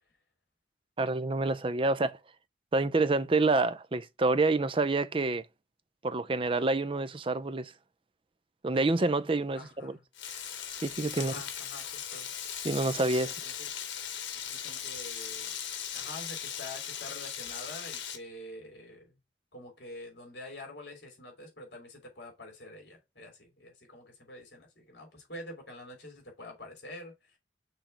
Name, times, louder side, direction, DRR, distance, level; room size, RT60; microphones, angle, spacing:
voice 1, 1.0-2.2 2.7-5.5 6.0-7.7 8.6-10.0 10.8-11.4 12.6-13.3, right 3 dB, 30° right, 0.5 m, -27 dB
voice 2, 9.5-10.0 11.1-12.3 13.2-13.9 14.3-15.5 15.9-19.2 19.5-27.4, left 1 dB, 60° left, 3.5 m, -47 dB
Frying (food), 10.1-18.2, left 9 dB, 85° left, 1.3 m, -38 dB
6.1 x 3.4 x 5.7 m
head